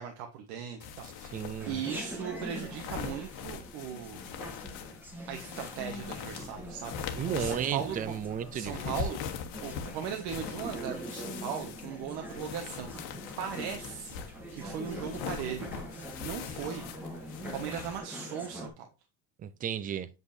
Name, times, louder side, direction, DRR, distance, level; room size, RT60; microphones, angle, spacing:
voice 1, 0.0-4.2 5.3-8.2 8.5-9.2 9.6-14.2 14.5-15.7 16.2-16.9 17.5-18.9, right 8 dB, 85° right, 1.4 m, -38 dB
sound 1, 0.8-18.0, left 7 dB, 80° left, 1.3 m, -42 dB
voice 2, 1.3-1.8 7.2-8.9 19.4-20.1, right 9 dB, 25° right, 0.4 m, -34 dB
Chatter, 1.6-18.7, right 1 dB, 5° right, 1.4 m, -44 dB
8.1 x 5.4 x 2.7 m
cardioid pair, 170°, 36 cm